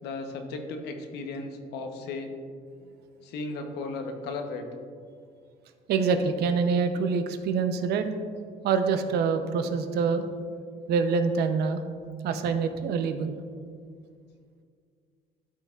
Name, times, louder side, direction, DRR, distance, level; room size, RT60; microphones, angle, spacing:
voice 1, 0.0-2.3 3.2-4.7, left 3 dB, 80° left, 5 dB, 0.8 m, -35 dB
voice 2, 5.9-8.1 8.6-10.2 10.9-11.8 12.2-13.3, right 5 dB, 75° right, 8 dB, 0.6 m, -25 dB
12.0 x 4.6 x 2.3 m, 2.1 s
cardioid pair, 110°, 17 cm